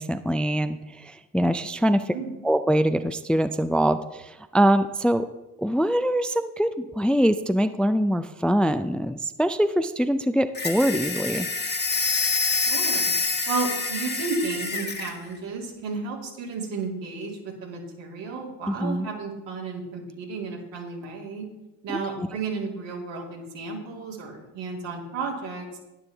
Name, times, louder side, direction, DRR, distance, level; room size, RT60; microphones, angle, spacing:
voice 1, 0.0-2.1 2.4-5.3 5.6-11.5 18.7-19.1 22.2-22.3, equal, ahead, 10 dB, 0.4 m, -23 dB
sound 1, 10.5-15.2, left 4 dB, 20° left, 1.3 m, -26 dB
voice 2, 12.5-13.1 13.5-21.5 21.8-25.7, right 4 dB, 75° right, -2 dB, 2.7 m, -33 dB
11.0 x 9.7 x 3.5 m, 1.0 s
hypercardioid pair, 55°, 45 cm